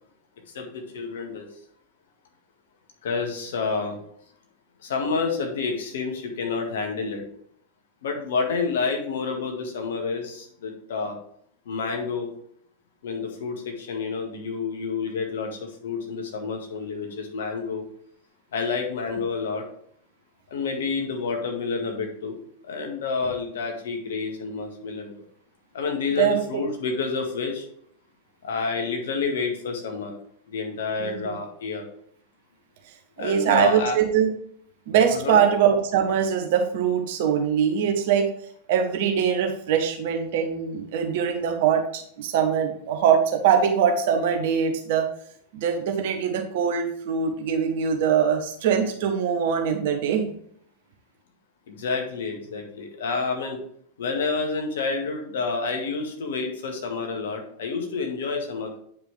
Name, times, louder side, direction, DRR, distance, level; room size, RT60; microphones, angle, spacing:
voice 1, 0.5-1.5 3.0-4.0 4.8-7.2 8.0-11.2 11.7-12.3 13.0-17.8 18.5-19.7 20.5-22.4 22.6-25.1 25.7-27.7 28.4-30.1 30.5-31.9 33.2-34.0 35.1-35.4 51.7-53.6 54.0-58.8, left 4 dB, 60° left, 3 dB, 1.8 m, -29 dB
voice 2, 26.2-26.6 31.0-31.3 33.2-34.3 34.9-38.3 38.7-45.1 45.5-50.3, right 7 dB, 50° right, 4 dB, 1.4 m, -22 dB
9.3 x 5.1 x 3.5 m, 0.64 s
figure-of-eight pair, 90°, 0 cm